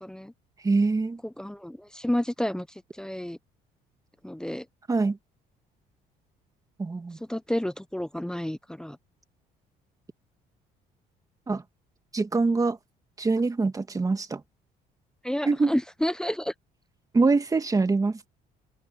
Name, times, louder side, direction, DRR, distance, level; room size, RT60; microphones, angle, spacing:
voice 1, 0.0-0.3 1.4-2.7 3.0-3.4 4.2-4.6 7.3-9.0 15.2-16.5, left 1 dB, 5° left, 0.9 m, -30 dB
voice 2, 0.6-1.2 4.9-5.2 6.8-7.2 11.5-11.6 12.1-12.8 13.2-14.4 15.5-15.8 17.1-18.3, right 3 dB, 20° right, 1.6 m, -24 dB
cardioid pair, 110°, 17 cm